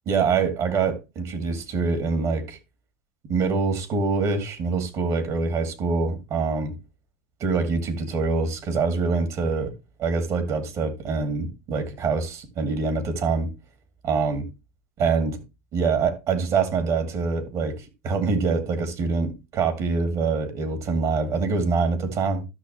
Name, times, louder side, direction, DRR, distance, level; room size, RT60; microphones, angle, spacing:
voice 1, 0.1-2.6 3.3-6.7 7.4-9.7 10.0-13.5 14.0-14.5 15.0-15.4 15.7-22.4, right 4 dB, 50° right, 2.4 m, -25 dB
12.5 x 6.3 x 3.2 m
hypercardioid pair, 90°, 7 cm